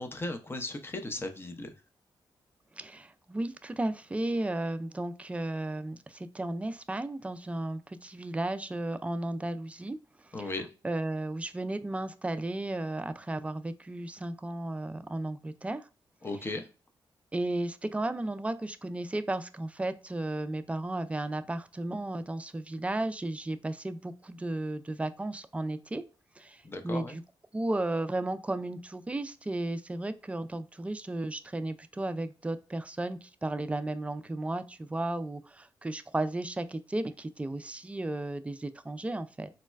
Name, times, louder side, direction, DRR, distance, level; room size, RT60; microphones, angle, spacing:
voice 1, 0.0-1.7 10.3-10.7 16.2-16.6 26.6-27.2, left 2 dB, 25° left, 6 dB, 0.6 m, -36 dB
voice 2, 2.8-10.0 10.4-10.5 10.8-15.9 17.3-26.0 26.4-27.2 27.5-39.5, right 2 dB, 15° right, 11 dB, 0.3 m, -34 dB
4.0 x 2.1 x 2.2 m, 0.35 s
cardioid pair, 85°, 9 cm